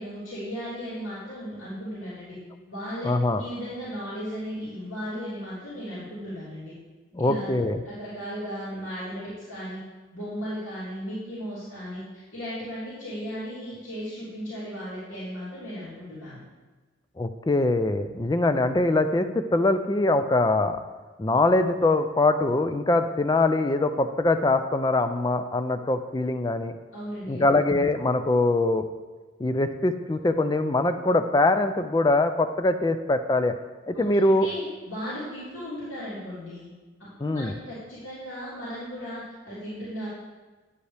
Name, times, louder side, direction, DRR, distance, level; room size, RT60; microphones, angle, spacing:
voice 1, 0.0-2.4 2.7-6.7 7.2-7.5 7.8-9.8 10.1-16.4 26.9-27.5 33.9-36.7 37.2-40.1, equal, 85° left, -11 dB, 3.1 m, -36 dB
voice 2, 3.0-3.4 7.1-7.8 17.2-20.8 21.2-26.7 27.3-28.8 29.4-33.6 33.9-34.5 37.2-37.5, left 2 dB, 20° left, 9 dB, 0.3 m, -23 dB
9.6 x 8.0 x 3.4 m, 1.3 s
head